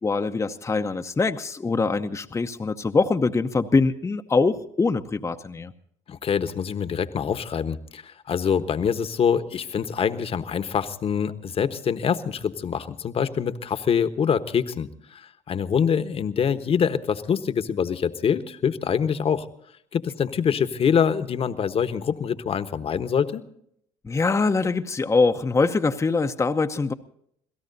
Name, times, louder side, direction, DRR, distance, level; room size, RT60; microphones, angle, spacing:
voice 1, 0.0-5.7 24.0-26.9, left 4 dB, 20° left, 6 dB, 0.9 m, -23 dB
voice 2, 6.1-19.5 19.9-23.4, left 7 dB, 40° left, 11 dB, 1.2 m, -25 dB
27.5 x 17.5 x 2.7 m, 0.69 s
hypercardioid pair, 65°, 15 cm